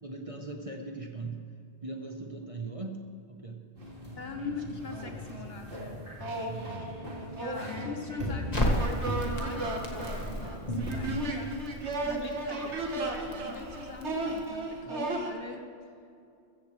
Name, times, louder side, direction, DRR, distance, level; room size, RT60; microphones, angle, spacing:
voice 1, 0.0-3.6 6.4-7.0 14.8-15.0, right 3 dB, 30° right, 2 dB, 1.0 m, -40 dB
sound 1, 3.8-11.7, equal, 45° right, 2.7 m, -40 dB
sound 2, 3.8-3.9 4.2-5.5 6.2-15.3, right 2 dB, 65° right, 1.7 m, -35 dB
voice 2, 4.2-6.0 7.4-11.6 12.0-15.6, left 3 dB, 55° left, 3 dB, 1.5 m, -42 dB
Crackle, 8.5-14.7, equal, 35° left, 1.7 m, -35 dB
15.0 x 14.5 x 3.2 m, 2.4 s
omnidirectional pair, 1.2 m